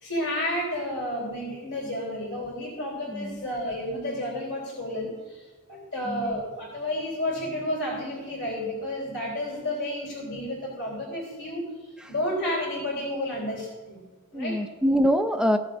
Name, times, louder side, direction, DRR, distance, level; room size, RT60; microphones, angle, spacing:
voice 1, 0.0-11.7 12.1-14.0 14.3-14.6, left 1 dB, 70° left, -4 dB, 3.4 m, -31 dB
voice 2, 3.1-3.4 6.1-6.4 12.0-12.1 14.3-15.6, equal, 5° right, 6 dB, 0.4 m, -25 dB
16.0 x 7.3 x 2.6 m, 1.3 s
head